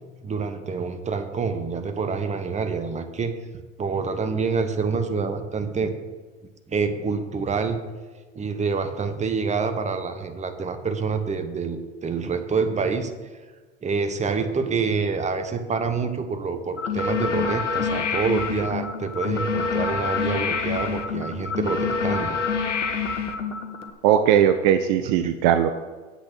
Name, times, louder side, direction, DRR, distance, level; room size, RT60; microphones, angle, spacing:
voice 1, 0.2-3.3 3.8-5.9 6.7-7.8 8.3-13.1 13.8-22.4, right 5 dB, 20° right, 7 dB, 1.1 m, -27 dB
sound 1, 16.8-23.9, left 5 dB, 85° left, 1.0 m, -27 dB
voice 2, 24.0-25.7, right 9 dB, 50° right, 9 dB, 0.7 m, -19 dB
7.8 x 6.2 x 7.0 m, 1.4 s
figure-of-eight pair, 75°, 35 cm